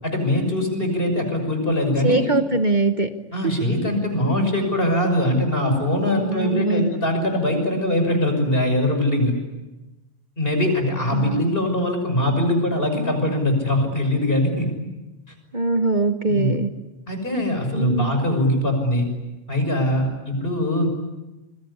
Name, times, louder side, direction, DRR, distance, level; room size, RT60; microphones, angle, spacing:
voice 1, 0.0-2.3 3.3-9.4 10.4-14.7 16.3-16.6 17.1-19.1 19.5-20.9, left 1 dB, 50° left, 5 dB, 6.4 m, -22 dB
voice 2, 2.0-3.1 6.1-6.9 11.1-11.4 15.5-16.7 17.7-18.1, right 3 dB, 40° right, 8 dB, 1.3 m, -22 dB
26.5 x 22.5 x 9.8 m, 1.0 s
omnidirectional pair, 1.2 m